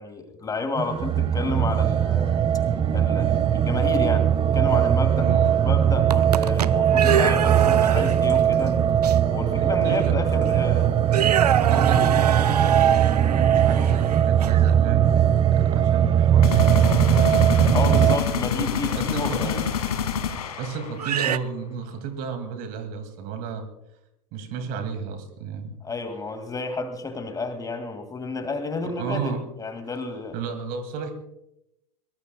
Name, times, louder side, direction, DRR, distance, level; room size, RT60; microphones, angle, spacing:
voice 1, 0.0-2.4 2.9-8.8 9.3-11.0 11.6-12.1 17.7-19.6 25.8-30.4, left 3 dB, 20° left, 8 dB, 2.0 m, -31 dB
sound 1, 0.8-18.2, right 9 dB, 25° right, 1.0 m, -20 dB
voice 2, 5.2-5.6 9.8-10.2 11.7-15.1 15.5-18.0 18.3-19.6 20.6-23.7 24.3-25.8 28.8-29.4 30.3-31.1, right 6 dB, 50° right, 9 dB, 2.2 m, -32 dB
sound 2, 5.9-8.4 9.0-9.2 10.0-10.1 10.4-10.7 11.1-14.7 17.9-18.1 19.8-19.9 20.9-21.4, right 9 dB, 85° right, 0.5 m, -25 dB
sound 3, 16.4-21.2, left 8 dB, 70° left, 1.8 m, -27 dB
23.0 x 19.0 x 2.2 m, 0.83 s
figure-of-eight pair, 85°, 20 cm